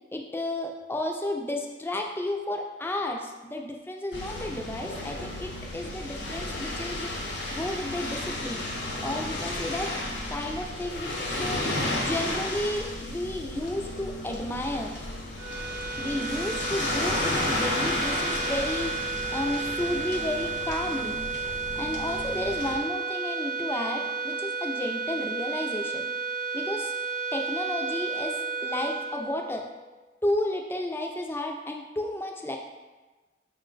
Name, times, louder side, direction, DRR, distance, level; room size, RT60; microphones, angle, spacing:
voice 1, 0.1-7.1 7.5-8.6 9.0-9.9 10.3-11.6 12.0-14.9 16.0-18.9 19.3-21.2 21.7-26.1 26.5-26.9 27.3-29.7 30.2-32.6, left 1 dB, 10° left, 2 dB, 0.4 m, -32 dB
sound 1, 4.1-22.8, left 1 dB, 70° left, 0.8 m, -33 dB
sound 2, 15.3-29.9, right 5 dB, 80° right, 0.6 m, -33 dB
5.3 x 2.2 x 3.8 m, 1.2 s
head